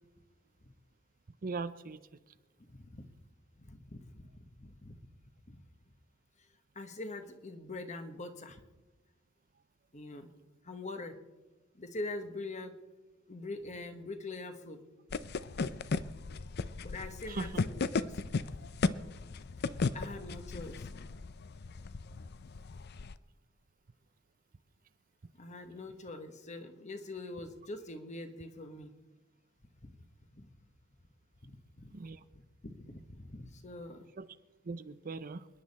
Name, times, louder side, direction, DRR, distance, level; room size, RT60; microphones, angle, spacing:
voice 1, 1.4-2.3 17.3-17.5 31.9-32.2 34.2-34.4 34.6-35.5, right 3 dB, 45° right, 13 dB, 0.6 m, -40 dB
voice 2, 2.7-3.1 3.6-5.0 5.5-5.7 6.7-8.6 9.9-10.3 10.6-11.2 11.7-12.7 13.3-14.8 15.6-16.2 16.8-18.4 18.8-19.0 19.4-19.5 19.9-20.9 25.3-28.9 29.8-30.0 30.3-30.5 31.4-31.5 31.8-31.9 32.6-34.1, left 2 dB, 35° left, 8 dB, 1.3 m, -44 dB
sound 1, 15.1-23.2, left 4 dB, 55° left, 0.5 m, -36 dB
28.0 x 10.0 x 4.2 m, 1.2 s
head